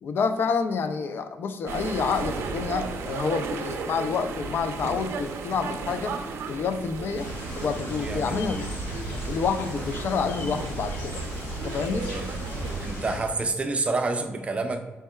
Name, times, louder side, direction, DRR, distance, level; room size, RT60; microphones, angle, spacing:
voice 1, 0.0-6.2 6.5-8.7 9.3-11.2 11.6-12.1, left 5 dB, 55° left, 9 dB, 0.3 m, -28 dB
sound 1, 1.7-13.3, right 4 dB, 85° right, 0.4 m, -34 dB
sound 2, 7.2-13.2, left 1 dB, 85° left, 1.1 m, -37 dB
voice 2, 8.0-8.4 10.3-10.4 12.1-12.3 12.8-14.8, right 3 dB, 30° right, 6 dB, 0.4 m, -28 dB
5.3 x 4.5 x 2.2 m, 1.2 s
cardioid pair, 115°, 4 cm